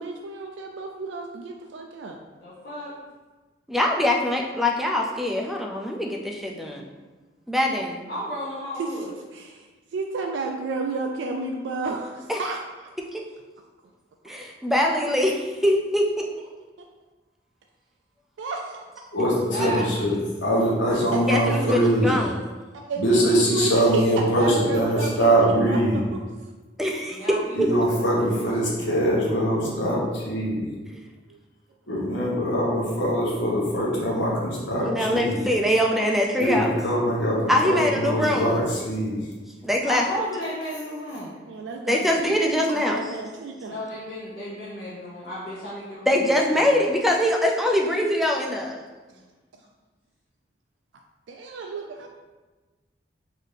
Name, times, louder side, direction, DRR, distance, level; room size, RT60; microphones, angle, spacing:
voice 1, 0.0-2.2 8.8-9.1 9.3-9.7 9.9-12.9 18.4-18.8 21.3-22.4 22.7-26.0 34.8-35.0 37.3-37.5 41.5-42.2 42.7-43.8 51.3-52.1, right 3 dB, 80° right, 2 dB, 0.3 m, -31 dB
voice 2, 2.4-2.9 8.1-9.1 19.5-19.9 27.1-28.7 39.8-41.4 43.7-46.2 49.1-49.2, equal, 60° left, -10 dB, 0.8 m, -33 dB
voice 3, 3.7-6.9 7.5-8.1 12.3-12.4 13.1-13.2 14.2-16.1 19.6-19.7 21.3-22.4 26.8-27.7 34.8-36.8 37.1-37.2 37.5-38.6 39.6-40.0 41.9-43.0 46.1-48.8, left 1 dB, ahead, 0 dB, 0.3 m, -23 dB
voice 4, 19.1-20.1 20.4-22.1 23.0-26.0 27.6-30.6 31.9-35.4 36.4-39.2, right 1 dB, 85° left, -4 dB, 1.1 m, -23 dB
3.9 x 2.7 x 3.3 m, 1.3 s
head